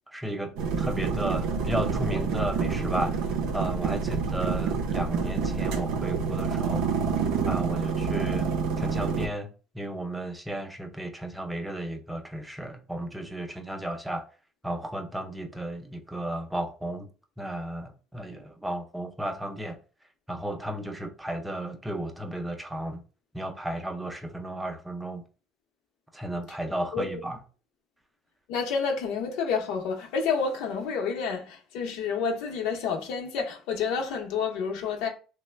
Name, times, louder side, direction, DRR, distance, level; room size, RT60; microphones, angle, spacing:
voice 1, 0.1-3.3 3.5-6.8 7.4-8.5 8.8-9.5 9.7-14.3 14.6-17.1 17.4-19.8 20.3-23.0 23.3-25.2 26.1-27.4, right 1 dB, 5° right, 0.4 m, -34 dB
sound 1, 0.6-9.3, right 5 dB, 90° right, 0.5 m, -28 dB
voice 2, 28.5-35.1, left 5 dB, 85° left, 0.7 m, -29 dB
3.1 x 2.1 x 3.2 m
cardioid pair, 155°, 0 cm